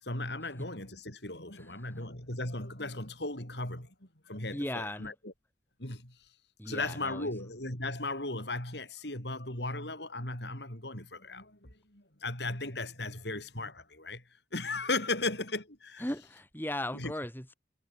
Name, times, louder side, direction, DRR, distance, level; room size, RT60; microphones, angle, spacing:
voice 1, 0.0-5.3 5.8-6.2 6.7-14.2 14.5-16.0 16.9-17.1, left 2 dB, 65° left, 7.6 m, -36 dB
voice 2, 1.6-1.9 4.5-5.1 6.6-7.3 16.0-17.5, left 1 dB, 10° left, 3.6 m, -37 dB
head